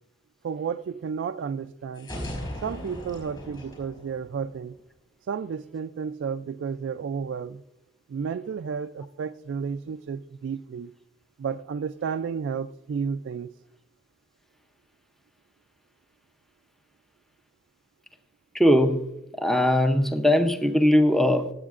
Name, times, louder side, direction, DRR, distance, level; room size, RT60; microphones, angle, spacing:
voice 1, 0.4-2.1 2.6-4.8 5.3-7.6 8.1-10.9 11.4-13.5, right 6 dB, 75° right, 0.3 m, -32 dB
sound 1, 1.9-4.8, equal, 25° left, 4.9 m, -37 dB
voice 2, 18.5-19.1 19.4-21.5, left 1 dB, ahead, 0.6 m, -20 dB
20.0 x 8.3 x 2.5 m
head